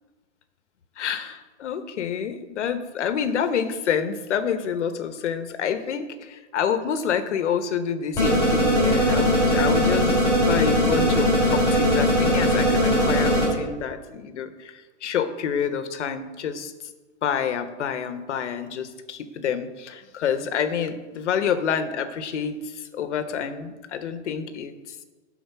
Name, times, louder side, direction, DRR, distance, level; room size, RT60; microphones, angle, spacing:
voice 1, 1.0-10.2 10.5-16.7 17.2-25.0, left 7 dB, 80° left, 10 dB, 1.0 m, -28 dB
sound 1, 8.2-13.5, equal, 10° left, 3.3 m, -20 dB
10.5 x 4.5 x 5.6 m, 1.3 s
supercardioid pair, 175°, 35 cm